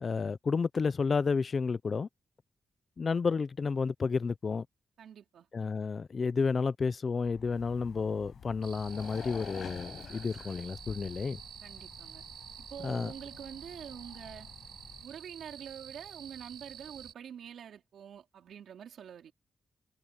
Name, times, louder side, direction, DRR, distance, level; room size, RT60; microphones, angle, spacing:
voice 1, 0.0-2.1 3.0-4.6 5.5-11.4 12.8-13.1, left 5 dB, 35° left, 0.6 m, -31 dB
voice 2, 5.0-5.5 11.6-12.2 12.7-14.5 15.0-19.3, right 8 dB, 90° right, 4.1 m, -46 dB
sound 1, 7.2-15.1, left 7 dB, 55° left, 5.6 m, -55 dB
sound 2, 7.5-11.2, left 8 dB, 75° left, 5.8 m, -47 dB
sound 3, 8.6-17.1, right 8 dB, 70° right, 6.9 m, -49 dB
wide cardioid pair, 160°, 0 cm